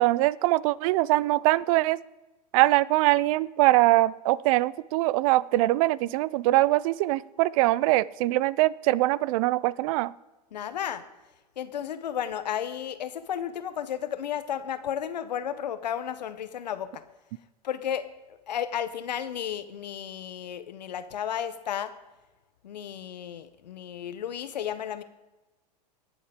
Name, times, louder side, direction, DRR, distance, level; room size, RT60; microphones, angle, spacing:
voice 1, 0.0-2.0 2.5-10.1, right 18 dB, 55° right, 22 dB, 0.4 m, -23 dB
voice 2, 10.5-11.0 11.6-17.0 17.6-18.1 18.5-21.9 22.6-25.0, left 9 dB, 85° left, 12 dB, 0.9 m, -33 dB
20.5 x 7.3 x 3.6 m, 1.1 s
hypercardioid pair, 105°, 21 cm